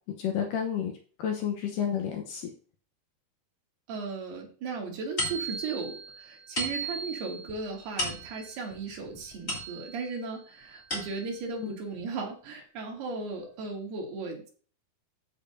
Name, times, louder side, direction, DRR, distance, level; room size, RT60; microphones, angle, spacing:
voice 1, 0.2-0.9 1.2-2.5 11.6-11.7, left 8 dB, 70° left, 3 dB, 2.3 m, -30 dB
voice 2, 3.9-14.5, right 4 dB, 75° right, -1 dB, 4.3 m, -36 dB
sound 1, 5.2-10.2 10.6-11.5, right 1 dB, 20° left, 3.1 m, -36 dB
14.0 x 6.7 x 2.7 m, 0.41 s
omnidirectional pair, 4.7 m